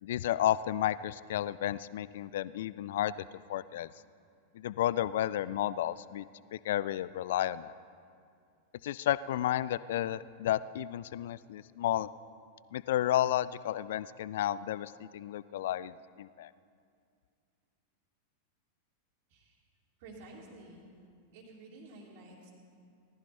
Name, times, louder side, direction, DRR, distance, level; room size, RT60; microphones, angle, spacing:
voice 1, 0.0-3.9 4.5-6.2 6.5-7.7 8.8-12.1 12.7-16.5, left 12 dB, 55° left, 18 dB, 0.3 m, -32 dB
voice 2, 20.0-20.8 21.3-22.5, right 2 dB, 50° right, -6 dB, 2.9 m, -51 dB
19.0 x 14.0 x 4.3 m, 2.3 s
figure-of-eight pair, 90°, 0 cm